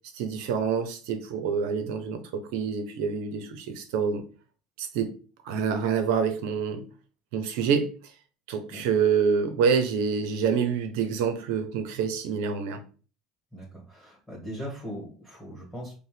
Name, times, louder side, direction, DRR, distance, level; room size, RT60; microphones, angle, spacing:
voice 1, 0.1-4.2 4.8-5.1 5.4-6.8 7.3-7.9 8.5-12.8, right 6 dB, 70° right, 0.7 m, -27 dB
voice 2, 13.5-15.9, equal, ahead, 2.1 m, -39 dB
5.1 x 2.2 x 3.4 m
hypercardioid pair, 75°, 0 cm